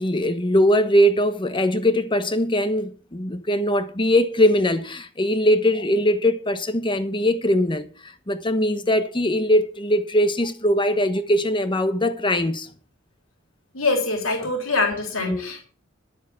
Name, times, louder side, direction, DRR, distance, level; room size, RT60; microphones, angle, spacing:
voice 1, 0.0-12.7 14.4-14.5 15.2-15.6, equal, 25° left, 1.1 m, -21 dB
voice 2, 13.7-15.6, left 3 dB, 75° left, 3.3 m, -24 dB
12.0 x 7.1 x 6.9 m
head